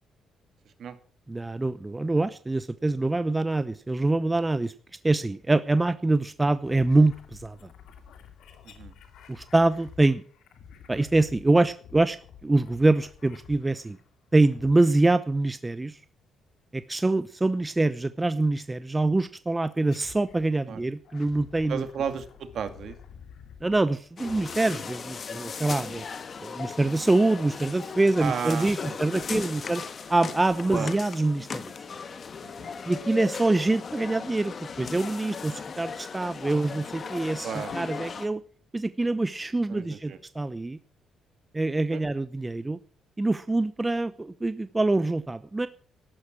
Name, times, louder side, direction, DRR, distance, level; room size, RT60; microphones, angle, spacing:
voice 1, 1.3-4.7 5.0-7.6 9.3-10.2 10.9-12.2 12.4-14.0 14.3-16.0 16.7-21.8 23.6-26.0 26.4-29.8 30.1-31.6 32.9-37.5 37.7-38.4 38.7-40.8 41.5-42.8 43.2-45.7, right 2 dB, 15° right, 13 dB, 0.9 m, -25 dB
sound 1, 6.6-14.1 14.5-15.2 16.9-17.4 18.4-18.5 19.7-20.5 20.9-25.3, left 7 dB, 80° left, 2.6 m, -50 dB
voice 2, 21.7-23.0 28.2-29.0 30.7-30.9 32.4-32.7 37.4-37.7 39.7-40.2 41.9-42.0, right 7 dB, 65° right, 9 dB, 2.3 m, -33 dB
sound 2, 24.2-38.3, left 5 dB, 45° left, 1.5 m, -37 dB
13.5 x 11.5 x 6.2 m, 0.43 s
cardioid pair, 90°, 0 cm